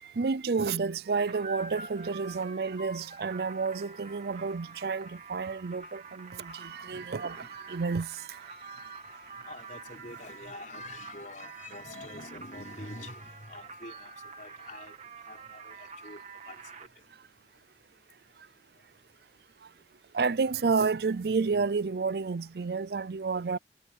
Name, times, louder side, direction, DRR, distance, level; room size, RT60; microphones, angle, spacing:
voice 1, 0.0-8.6 20.1-23.6, right 4 dB, 60° right, 0.5 m, -30 dB
sound 1, 1.3-16.9, right 4 dB, 40° right, 1.6 m, -46 dB
voice 2, 4.7-5.0 5.4-5.8 6.1-6.2 6.6-7.8 8.7-15.0 15.2-17.1, left 2 dB, 45° left, 5.1 m, -47 dB
head